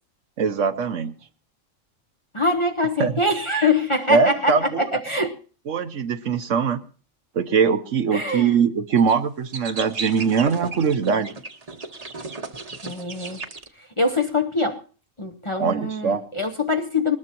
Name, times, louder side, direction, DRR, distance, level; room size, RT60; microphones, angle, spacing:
voice 1, 0.4-1.1 3.0-3.1 4.1-4.9 5.7-6.8 7.3-11.3 15.6-16.2, right 6 dB, 70° right, 1.2 m, -21 dB
voice 2, 2.3-5.3 8.1-8.6 12.8-13.4 14.0-14.8 15.2-17.2, left 2 dB, 25° left, 0.8 m, -23 dB
sound 1, 9.0-9.1 9.5-13.7, right 3 dB, 30° right, 1.0 m, -35 dB
21.0 x 19.5 x 3.0 m
omnidirectional pair, 1.4 m